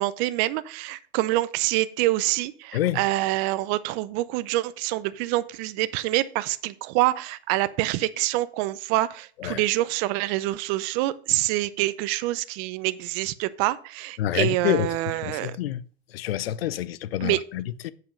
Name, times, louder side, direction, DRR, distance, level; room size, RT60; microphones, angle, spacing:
voice 1, 0.0-15.6 17.2-17.4, right 17 dB, 35° right, 0.5 m, -26 dB
voice 2, 14.2-15.0 15.2-15.8 16.1-17.9, left 12 dB, 65° left, 0.7 m, -27 dB
7.8 x 5.6 x 5.1 m
hypercardioid pair, 115°, 32 cm